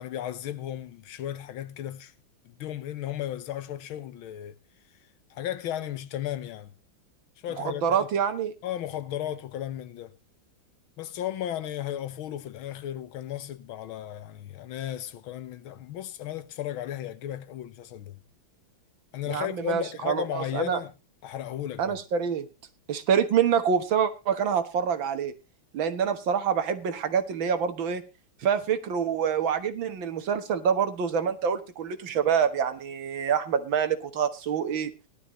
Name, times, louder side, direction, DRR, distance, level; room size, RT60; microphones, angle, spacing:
voice 1, 0.0-2.1 2.4-4.6 5.3-6.7 7.4-8.1 8.6-10.2 11.0-18.2 19.1-20.9 21.2-22.0, left 11 dB, 90° left, 1.8 m, -35 dB
voice 2, 7.7-8.5 19.3-20.8 21.8-22.5 22.9-25.3 25.7-28.0 28.4-34.9, right 7 dB, 75° right, 2.0 m, -26 dB
18.0 x 12.0 x 3.1 m
omnidirectional pair, 2.2 m